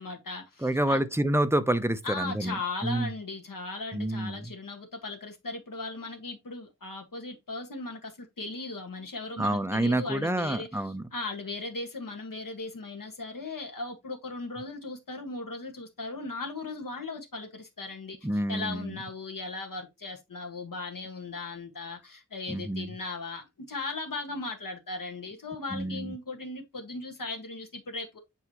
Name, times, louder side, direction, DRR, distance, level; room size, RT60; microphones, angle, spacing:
voice 1, 0.0-1.0 2.0-10.8 11.1-18.2 18.5-28.2, left 3 dB, 70° left, 1.7 m, -37 dB
voice 2, 0.6-3.1 3.9-4.5 9.4-11.1 18.2-19.0 22.5-22.9 25.7-26.2, right 1 dB, 5° right, 0.7 m, -28 dB
8.2 x 4.7 x 3.0 m
wide cardioid pair, 70°, 34 cm